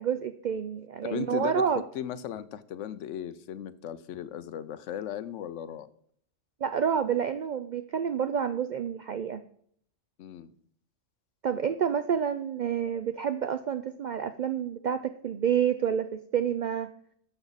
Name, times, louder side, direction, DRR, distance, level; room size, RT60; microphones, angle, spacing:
voice 1, 0.0-1.8 6.6-9.4 11.4-16.9, right 8 dB, 65° right, 11 dB, 0.4 m, -29 dB
voice 2, 1.0-1.6 1.9-5.9 10.2-10.5, left 10 dB, 75° left, 15 dB, 1.0 m, -37 dB
12.0 x 7.2 x 4.0 m, 0.65 s
omnidirectional pair, 1.3 m